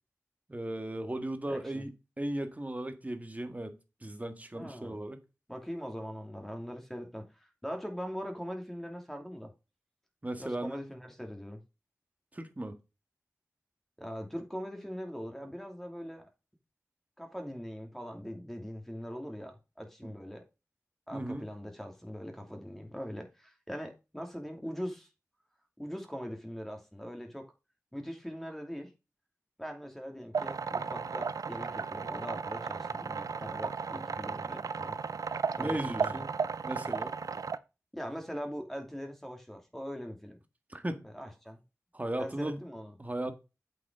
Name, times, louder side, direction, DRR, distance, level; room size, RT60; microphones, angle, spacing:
voice 1, 0.5-5.2 10.2-10.7 12.3-12.8 20.0-20.1 21.1-21.5 35.6-36.3 36.6-37.2 40.7-41.1 41.9-42.6 43.0-43.3, right 1 dB, 25° right, 1.7 m, -36 dB
voice 2, 1.5-1.8 4.5-5.0 5.5-9.5 10.4-11.6 14.0-16.3 17.2-20.4 21.1-25.1 25.8-27.5 27.9-28.9 29.6-35.0 35.5-36.3 37.9-40.4 41.0-41.6 42.2-42.9 43.2-43.3, equal, 5° left, 2.7 m, -41 dB
sound 1, 30.3-37.6, right 5 dB, 90° right, 0.5 m, -35 dB
8.3 x 5.3 x 4.8 m
wide cardioid pair, 65°, 6 cm